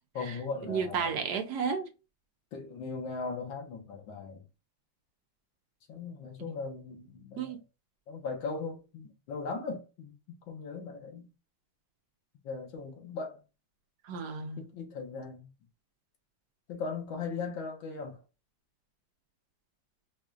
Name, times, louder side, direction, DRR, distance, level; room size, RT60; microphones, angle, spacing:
voice 1, 0.1-1.1 2.5-4.4 5.9-7.6 8.1-11.2 12.4-13.4 14.6-15.5 16.7-18.2, left 4 dB, 90° left, 1.9 m, -38 dB
voice 2, 0.7-1.9 7.4-7.6 14.0-14.6, right 6 dB, 70° right, 1.1 m, -32 dB
4.8 x 2.3 x 2.5 m
omnidirectional pair, 2.1 m